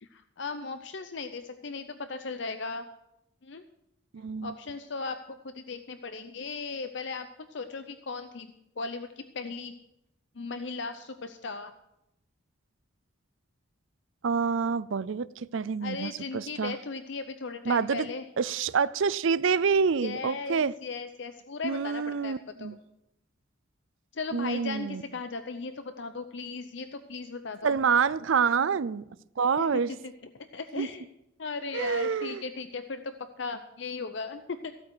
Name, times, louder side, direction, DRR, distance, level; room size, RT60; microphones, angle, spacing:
voice 1, 0.0-2.9 3.4-3.6 4.4-5.2 5.4-8.5 8.8-9.1 9.3-9.7 10.4-11.7 15.8-18.2 20.0-22.7 24.1-27.8 29.6-29.8 30.5-31.0 31.4-34.7, left 4 dB, 60° left, 0.6 m, -37 dB
voice 2, 4.1-4.5 14.2-16.8 17.7-18.1 18.4-20.7 21.6-22.8 24.3-25.0 27.6-29.1 29.4-29.9 30.8-30.9 31.7-32.4, right 6 dB, 75° right, 0.5 m, -27 dB
15.0 x 8.9 x 6.2 m
head